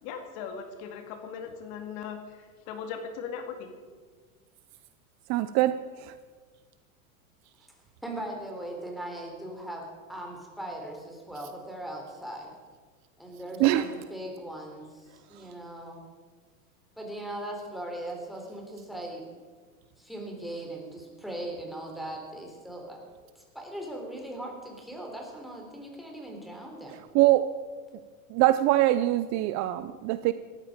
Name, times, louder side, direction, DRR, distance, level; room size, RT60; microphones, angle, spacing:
voice 1, 0.0-3.7, left 6 dB, 55° left, 6 dB, 2.4 m, -39 dB
voice 2, 5.3-6.1 13.6-13.8 27.1-27.5 28.3-30.3, right 15 dB, 40° right, 13 dB, 0.6 m, -23 dB
voice 3, 8.0-12.5 13.2-16.1 17.0-19.3 20.0-23.0 23.4-27.0, right 1 dB, ahead, 0 dB, 3.8 m, -39 dB
18.0 x 13.5 x 5.1 m, 1.5 s
supercardioid pair, 130°, 42 cm